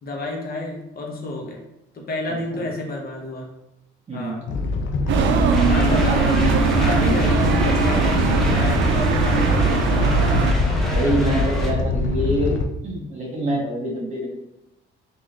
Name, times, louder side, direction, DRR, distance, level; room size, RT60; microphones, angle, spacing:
voice 1, 0.0-1.6 1.9-3.5 4.1-4.4 5.6-10.2, left 1 dB, 50° left, 0 dB, 0.9 m, -30 dB
Animal, 4.5-12.6, left 3 dB, 75° left, 0.5 m, -24 dB
sound 1, 5.1-10.5, right 4 dB, 75° right, 0.5 m, -20 dB
sound 2, 5.5-11.7, equal, ahead, 0.8 m, -31 dB
voice 2, 10.9-12.5 12.8-14.3, right 1 dB, 35° right, -3 dB, 1.4 m, -25 dB
3.7 x 2.6 x 3.1 m, 0.89 s
cardioid pair, 90°, 20 cm